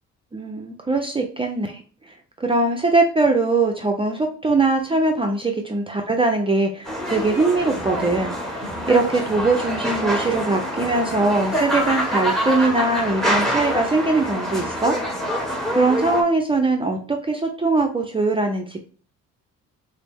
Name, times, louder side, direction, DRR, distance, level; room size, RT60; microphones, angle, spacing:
voice 1, 0.3-1.8 2.1-15.0 15.7-18.8, right 3 dB, 20° right, 3 dB, 0.5 m, -21 dB
sound 1, 6.8-16.2, equal, ahead, 1.1 m, -26 dB
4.0 x 2.0 x 3.4 m, 0.40 s
cardioid pair, 90°, 30 cm